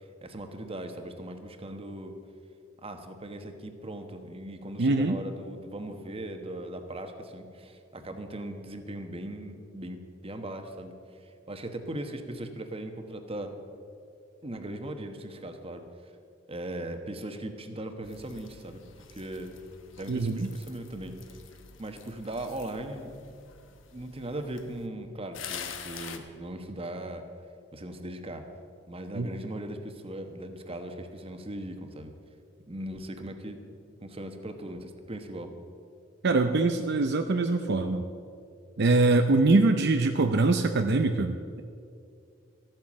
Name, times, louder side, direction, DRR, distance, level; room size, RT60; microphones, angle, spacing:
voice 1, 0.2-2.1 2.8-10.9 11.5-13.5 14.4-15.8 16.5-19.5 20.0-21.2 21.8-23.1 23.9-27.2 27.7-28.5 28.9-32.2 32.7-33.6 34.0-35.5, right 1 dB, 30° right, 6 dB, 1.2 m, -39 dB
voice 2, 4.8-5.2 20.1-20.5 29.1-29.3 36.2-38.0 38.8-41.6, right 3 dB, 60° right, 7 dB, 0.6 m, -23 dB
sound 1, 18.0-24.9 25.3-26.2, left 7 dB, 70° left, 1.1 m, -46 dB
13.5 x 9.0 x 7.4 m, 2.4 s
head